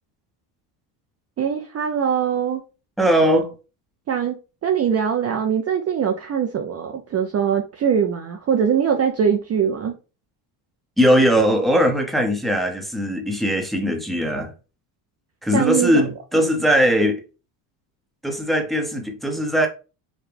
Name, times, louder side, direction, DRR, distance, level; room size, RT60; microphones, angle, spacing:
voice 1, 1.4-2.6 4.1-4.4 4.6-9.9 15.5-16.0, right 7 dB, 35° right, 0.5 m, -22 dB
voice 2, 3.0-3.5 11.0-14.5 15.4-17.2 18.2-19.7, equal, ahead, 0.8 m, -19 dB
4.9 x 2.2 x 3.3 m
cardioid pair, 100°, 48 cm